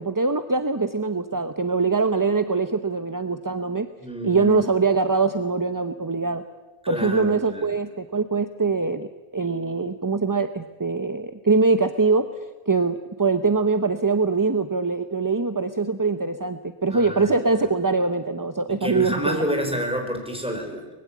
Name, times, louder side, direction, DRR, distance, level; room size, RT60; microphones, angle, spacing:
voice 1, 0.0-3.9 4.2-6.4 6.9-9.1 9.3-12.3 12.7-19.5, right 4 dB, 20° right, 9 dB, 0.7 m, -23 dB
voice 2, 4.0-4.6 6.8-7.7 16.9-17.4 18.7-20.9, equal, 5° right, 3 dB, 4.3 m, -29 dB
24.0 x 20.5 x 8.5 m, 1.2 s
omnidirectional pair, 1.2 m